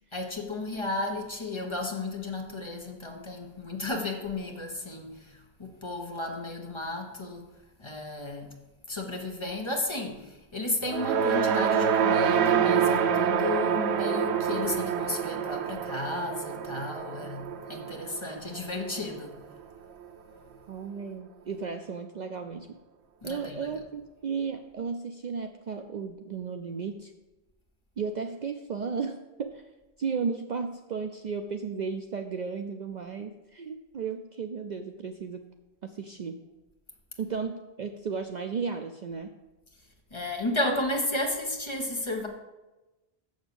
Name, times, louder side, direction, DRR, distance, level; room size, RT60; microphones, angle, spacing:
voice 1, 0.1-7.5 7.8-8.6 8.9-19.4 23.2-23.7 40.1-42.3, left 2 dB, 30° left, 1 dB, 1.2 m, -33 dB
sound 1, 10.8-19.2, right 7 dB, 90° right, 0.9 m, -27 dB
voice 2, 20.7-22.7 23.2-27.1 28.0-29.7 30.0-35.4 35.8-36.4 37.2-39.3, right 5 dB, 55° right, 6 dB, 0.6 m, -34 dB
7.0 x 6.5 x 6.9 m, 1.1 s
omnidirectional pair, 1.1 m